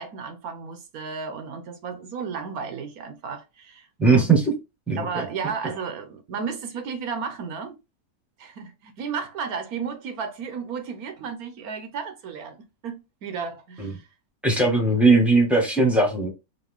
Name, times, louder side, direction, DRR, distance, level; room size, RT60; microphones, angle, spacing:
voice 1, 0.0-4.3 5.0-7.7 8.4-12.6 12.8-14.1, right 6 dB, 65° right, 1.1 m, -33 dB
voice 2, 4.0-4.5 4.9-5.2 13.8-13.9 14.4-16.3, right 3 dB, ahead, 1.0 m, -19 dB
3.9 x 2.7 x 3.5 m
omnidirectional pair, 1.8 m